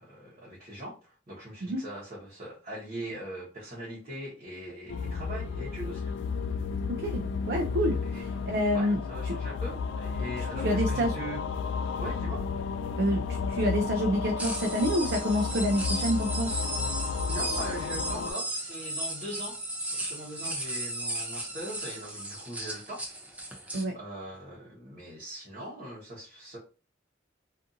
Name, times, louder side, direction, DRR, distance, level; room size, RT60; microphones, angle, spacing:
voice 1, 0.0-6.1 8.0-8.2 8.7-11.4 12.0-12.4 16.5-16.6 17.3-19.6 19.9-23.0 23.5-23.6 23.9-26.6, right 1 dB, 40° right, -7 dB, 1.0 m, -41 dB
sound 1, 4.9-18.3, left 5 dB, 80° left, 0.3 m, -32 dB
voice 2, 6.9-9.0 9.3-9.4 10.4-11.1 13.0-16.5 23.7-24.0, equal, 60° right, 3 dB, 0.4 m, -28 dB
sound 2, 14.4-23.8, right 1 dB, 10° right, 0.5 m, -35 dB
2.5 x 2.5 x 2.6 m, 0.34 s
head